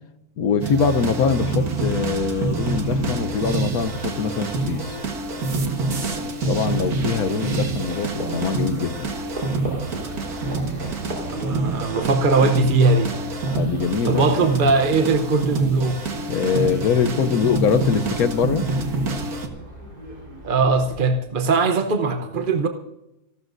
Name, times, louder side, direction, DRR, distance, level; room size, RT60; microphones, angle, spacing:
voice 1, 0.4-5.0 6.5-9.1 13.5-14.5 16.2-18.7, left 6 dB, 70° left, 1.3 m, -23 dB
sound 1, 0.6-19.5, right 3 dB, 70° right, 2.0 m, -27 dB
Livestock farm animals working animals, 2.1-21.1, equal, 90° right, 4.8 m, -39 dB
voice 2, 11.3-13.2 14.0-16.0 16.5-16.8 20.4-22.7, right 3 dB, 40° right, 0.9 m, -20 dB
27.5 x 12.5 x 2.6 m
omnidirectional pair, 1.6 m